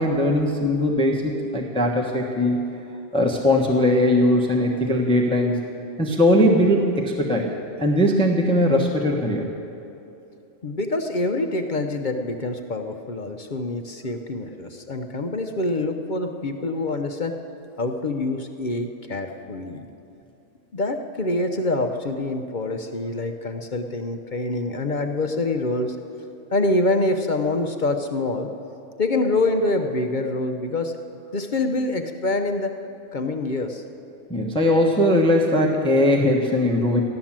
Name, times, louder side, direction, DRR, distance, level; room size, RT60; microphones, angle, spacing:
voice 1, 0.0-2.7 3.1-5.6 6.0-7.5 7.8-9.5 34.3-37.0, left 1 dB, 5° left, 0 dB, 1.0 m, -20 dB
voice 2, 10.6-17.4 17.8-19.9 20.7-26.0 26.5-28.5 29.0-30.9 31.3-32.7 33.1-33.8, left 2 dB, 45° left, 5 dB, 0.8 m, -25 dB
15.0 x 11.5 x 7.4 m, 2.8 s
omnidirectional pair, 1.3 m